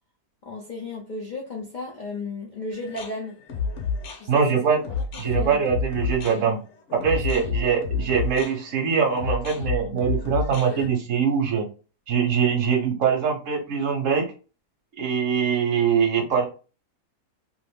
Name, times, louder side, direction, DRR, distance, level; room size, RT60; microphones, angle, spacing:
voice 1, 0.4-3.4 4.1-4.7 5.1-5.6 7.3-7.5, left 2 dB, 75° left, -1 dB, 0.4 m, -34 dB
sound 1, 2.7-10.9, left 5 dB, 55° left, 1.0 m, -30 dB
voice 2, 4.3-4.8 5.2-6.6 6.9-11.7 12.1-14.2 15.0-16.5, right 6 dB, 60° right, 2 dB, 1.1 m, -23 dB
2.8 x 2.5 x 3.5 m, 0.35 s
omnidirectional pair, 1.7 m